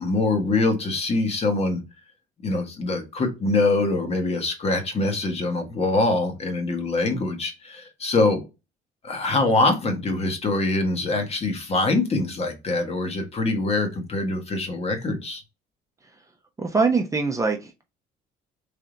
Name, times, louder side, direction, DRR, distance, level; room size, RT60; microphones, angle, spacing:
voice 1, 0.0-1.8 2.4-8.4 9.0-15.4, left 2 dB, 35° left, 5 dB, 1.2 m, -24 dB
voice 2, 16.6-17.8, right 4 dB, 20° right, 3 dB, 0.7 m, -23 dB
3.4 x 2.7 x 3.7 m, 0.26 s
cardioid pair, 110°, 17 cm